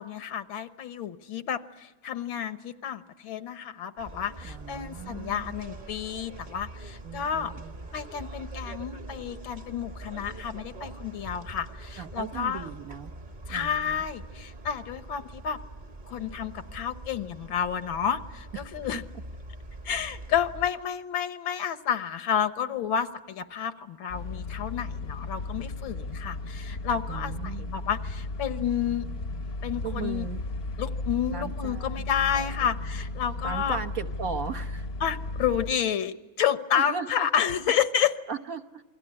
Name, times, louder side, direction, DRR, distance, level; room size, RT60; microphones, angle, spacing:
voice 1, 0.0-7.5 7.9-12.7 13.5-15.6 16.1-19.0 19.8-29.1 29.6-30.3 30.8-33.8 35.0-38.1, left 8 dB, 80° left, 11 dB, 1.9 m, -30 dB
sound 1, 4.0-20.7, right 2 dB, 25° right, 1.3 m, -43 dB
voice 2, 4.4-5.5 7.0-7.7 12.0-13.1 13.5-14.0 18.8-18.9 27.1-27.7 29.8-30.4 31.3-32.7 33.4-34.9 36.7-37.3 38.3-38.8, right 6 dB, 50° right, 7 dB, 1.3 m, -37 dB
sound 2, 24.1-35.7, left 2 dB, 40° left, 1.0 m, -35 dB
27.5 x 22.0 x 9.8 m, 1.2 s
omnidirectional pair, 2.2 m